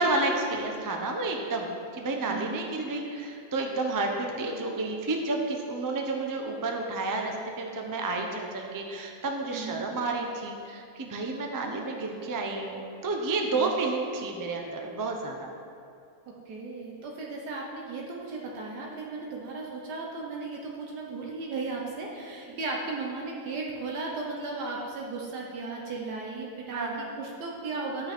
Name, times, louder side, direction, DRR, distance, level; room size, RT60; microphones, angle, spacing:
voice 1, 0.0-1.7 1.9-15.5 19.2-19.4 22.5-22.6 26.7-27.1, right 3 dB, 25° right, 2 dB, 0.4 m, -30 dB
voice 2, 2.3-2.6 9.5-9.8 13.5-13.8 16.3-28.1, right 3 dB, 75° right, -1 dB, 1.5 m, -36 dB
12.5 x 5.7 x 4.4 m, 2.6 s
omnidirectional pair, 1.8 m